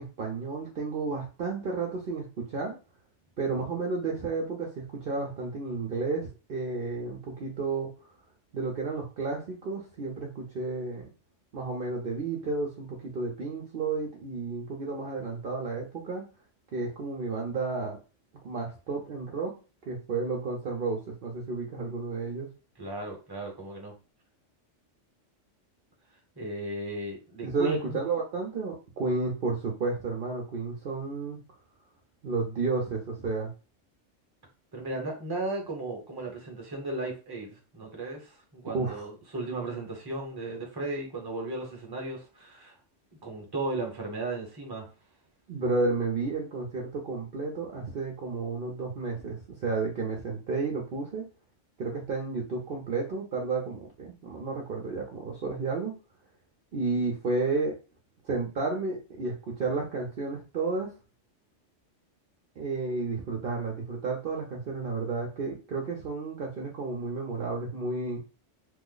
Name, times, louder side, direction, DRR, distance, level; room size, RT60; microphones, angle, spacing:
voice 1, 0.0-2.8 3.4-7.9 8.5-11.0 11.5-16.2 16.7-18.0 18.4-19.5 19.9-22.5 27.4-31.4 32.2-33.5 38.7-39.0 45.5-51.2 51.8-55.9 56.7-57.7 58.2-60.9 62.6-68.2, right 3 dB, 55° right, 0.8 m, -32 dB
voice 2, 22.8-23.9 26.4-28.0 34.7-42.8 43.2-44.9, right 2 dB, 20° right, 0.8 m, -35 dB
3.1 x 2.0 x 3.8 m
omnidirectional pair, 1.2 m